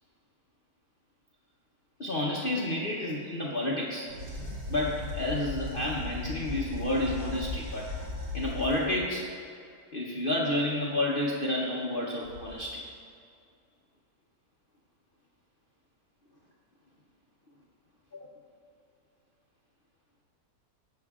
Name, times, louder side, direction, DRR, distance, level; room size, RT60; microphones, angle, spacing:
voice 1, 2.0-4.1 4.7-7.9 8.3-9.3 9.9-12.8 18.1-18.3, left 1 dB, 40° left, -4 dB, 0.9 m, -30 dB
sound 1, 4.1-9.0 12.2-12.6, left 2 dB, 40° right, 1.8 m, -37 dB
18.0 x 6.8 x 2.4 m, 2.4 s
omnidirectional pair, 1.8 m